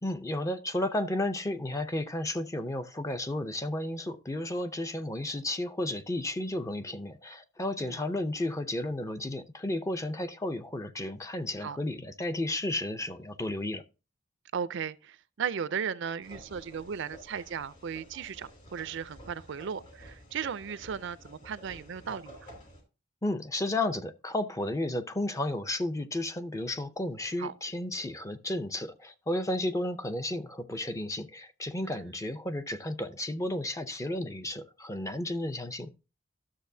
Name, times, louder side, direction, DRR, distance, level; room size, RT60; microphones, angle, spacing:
voice 1, 0.0-13.8 23.2-35.9, left 1 dB, 15° left, 0.5 m, -33 dB
voice 2, 14.5-22.5 27.4-27.5 31.9-32.0, right 7 dB, 65° right, 0.5 m, -36 dB
Escalator looped, 16.2-22.8, equal, 40° left, 2.9 m, -51 dB
12.5 x 6.6 x 2.7 m
head